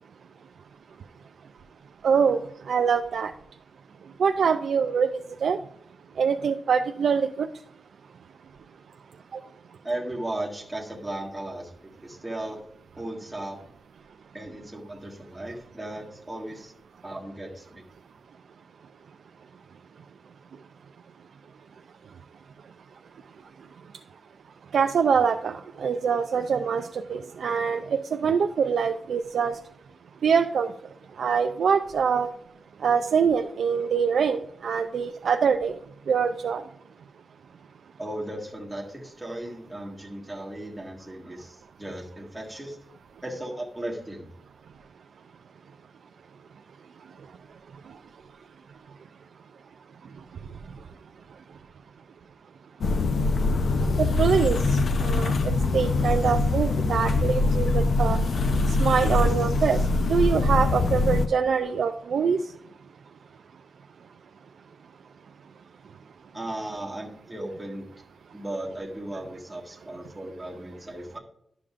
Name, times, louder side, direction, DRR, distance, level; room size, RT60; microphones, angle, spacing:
voice 1, 2.0-2.4 2.7-3.3 4.2-5.6 6.2-7.5 24.7-29.6 30.2-30.7 31.2-32.3 32.8-35.8 36.1-36.6 54.0-58.2 58.8-59.8 60.1-62.4, right 6 dB, 75° right, 6 dB, 0.4 m, -24 dB
voice 2, 9.8-12.6 12.9-13.6 14.3-16.7 17.0-17.8 38.0-42.8 43.2-44.3 66.3-67.9 68.3-71.2, right 1 dB, 5° right, -3 dB, 1.7 m, -36 dB
sound 1, 52.8-61.3, left 3 dB, 60° left, 0.5 m, -23 dB
11.0 x 7.0 x 2.5 m, 0.72 s
wide cardioid pair, 175°, 0 cm